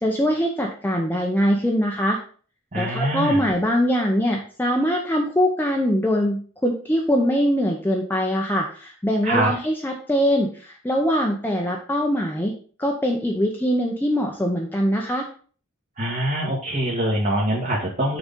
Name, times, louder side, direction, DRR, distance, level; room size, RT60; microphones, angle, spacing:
voice 1, 0.0-2.2 2.7-12.5 12.8-15.3, equal, 10° left, 0 dB, 0.8 m, -22 dB
voice 2, 2.7-3.5 9.2-9.5 16.0-18.2, right 1 dB, 40° right, -4 dB, 1.6 m, -24 dB
6.4 x 3.9 x 5.3 m, 0.42 s
head